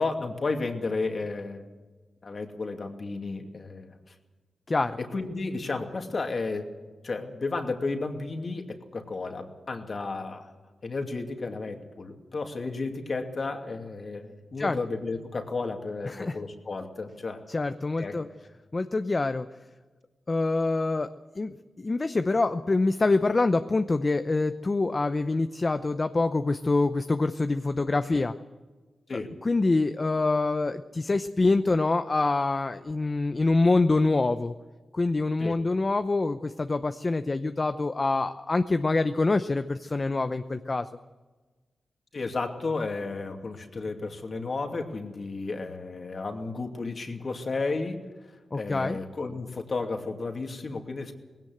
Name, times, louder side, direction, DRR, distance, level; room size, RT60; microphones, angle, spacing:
voice 1, 0.0-1.6 2.2-4.0 5.0-6.7 7.0-10.5 10.8-17.4 18.0-18.2 29.1-29.3 35.4-35.6 42.1-48.0 48.5-51.1, left 3 dB, 50° left, 4 dB, 2.6 m, -33 dB
voice 2, 4.7-5.0 14.6-14.8 16.1-16.4 17.5-18.3 18.7-19.5 20.3-28.4 29.4-34.5 34.9-40.9 48.5-49.0, left 3 dB, 35° left, 9 dB, 0.7 m, -25 dB
19.5 x 17.0 x 7.9 m, 1.3 s
wide cardioid pair, 90°, 0 cm